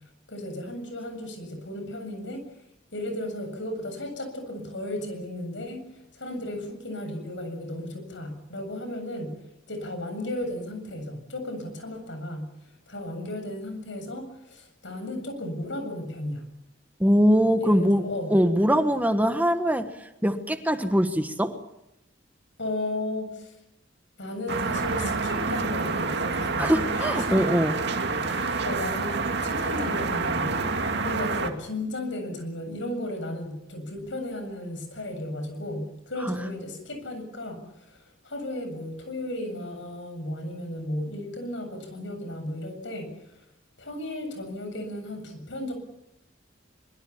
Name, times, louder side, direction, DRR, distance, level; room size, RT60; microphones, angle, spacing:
voice 1, 0.3-2.4 2.9-9.3 9.7-12.5 12.9-16.4 17.6-18.3 22.6-23.5 24.2-27.5 28.2-30.5 31.0-43.1 43.8-45.7, left 1 dB, 75° left, 7 dB, 7.6 m, -35 dB
voice 2, 17.0-21.6 26.6-27.7 36.2-36.4, equal, 10° right, 8 dB, 1.3 m, -22 dB
sound 1, 24.5-31.5, right 3 dB, 65° right, 2.3 m, -28 dB
23.5 x 23.5 x 7.2 m, 0.88 s
head